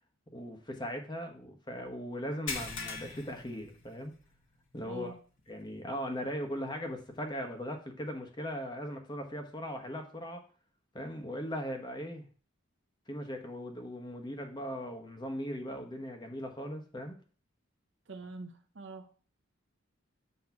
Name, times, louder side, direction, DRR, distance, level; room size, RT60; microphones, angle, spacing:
voice 1, 0.3-4.1 4.7-5.1 5.5-10.4 10.9-12.3 13.1-17.2, equal, 20° left, 1.1 m, -39 dB
sound 1, 2.5-4.4 4.7-4.9 5.4-5.5 7.1-7.2, left 4 dB, 75° left, 1.4 m, -40 dB
voice 2, 4.9-5.2 18.1-19.1, right 3 dB, 60° right, 0.8 m, -45 dB
8.2 x 3.1 x 5.8 m
head